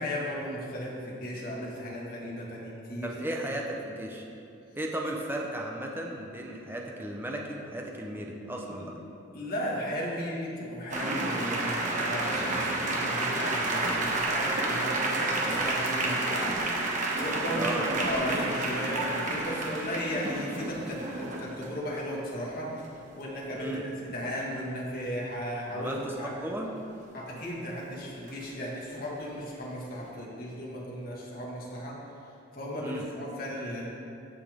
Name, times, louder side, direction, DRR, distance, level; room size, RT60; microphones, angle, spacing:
voice 1, 0.0-3.2 8.6-8.9 9.3-22.7 23.2-23.8 24.1-26.3 27.1-32.0 32.5-33.9, equal, 45° left, -4 dB, 1.8 m, -35 dB
voice 2, 3.0-4.2 4.8-9.0 17.6-17.8 23.5-23.8 25.7-26.8 32.8-33.0, right 1 dB, 10° right, 0 dB, 0.8 m, -35 dB
sound 1, 10.9-21.7 23.6-23.7 24.0-24.3 28.3-28.5, right 2 dB, 40° right, 1.1 m, -30 dB
15.5 x 5.8 x 3.6 m, 2.6 s
head